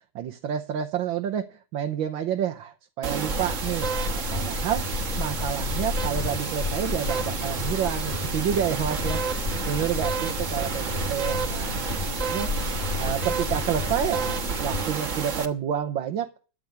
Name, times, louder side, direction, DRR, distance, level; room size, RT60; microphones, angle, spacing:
voice 1, 0.1-4.9 5.2-12.5 13.0-16.4, right 9 dB, 80° right, 5 dB, 1.6 m, -29 dB
sound 1, 3.0-15.5, right 5 dB, 45° right, 1.5 m, -30 dB
sound 2, 3.3-14.9, left 4 dB, 65° left, 0.4 m, -32 dB
13.0 x 7.6 x 9.3 m, 0.38 s
omnidirectional pair, 2.1 m